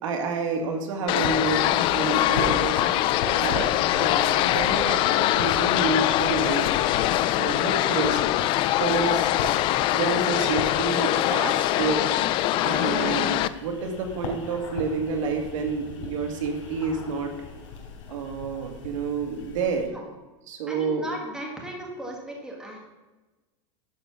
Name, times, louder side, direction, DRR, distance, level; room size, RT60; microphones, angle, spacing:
voice 1, 0.0-2.8 3.3-3.6 3.9-6.7 7.4-8.2 8.8-9.3 9.9-12.1 12.6-17.3 18.1-19.9 20.5-21.0, right 4 dB, 85° right, 3 dB, 2.0 m, -29 dB
sound 1, 1.1-13.5, left 14 dB, 30° left, 0.3 m, -23 dB
sound 2, 1.2-19.9, left 3 dB, 90° left, 3.4 m, -38 dB
voice 2, 3.3-3.7 7.2-7.6 8.8-9.1 19.9-20.0 20.7-22.8, right 1 dB, 5° right, -1 dB, 1.8 m, -37 dB
11.5 x 5.0 x 6.1 m, 1.2 s
supercardioid pair, 155°, 16 cm